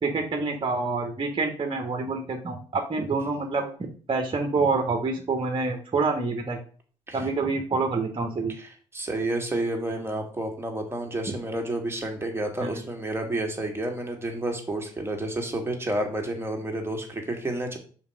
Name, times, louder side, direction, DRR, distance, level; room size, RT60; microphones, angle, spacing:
voice 1, 0.0-3.7 4.1-6.6 7.1-8.5, right 3 dB, 35° right, 3 dB, 1.5 m, -27 dB
voice 2, 8.6-17.8, right 1 dB, 15° right, 2 dB, 2.4 m, -30 dB
5.6 x 4.4 x 5.2 m, 0.41 s
hypercardioid pair, 55°, 15 cm